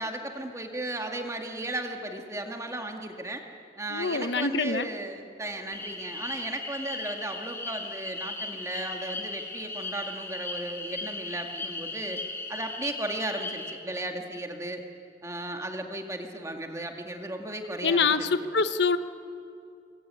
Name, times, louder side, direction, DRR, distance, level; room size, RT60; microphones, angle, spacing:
voice 1, 0.0-3.4 3.8-12.2 12.5-14.8 15.2-18.3, right 1 dB, 15° right, 3 dB, 2.1 m, -35 dB
voice 2, 3.9-4.9 17.8-19.0, left 4 dB, 80° left, 11 dB, 1.0 m, -25 dB
sound 1, 5.7-13.7, left 3 dB, 15° left, 2.4 m, -37 dB
26.0 x 21.5 x 9.3 m, 2.5 s
head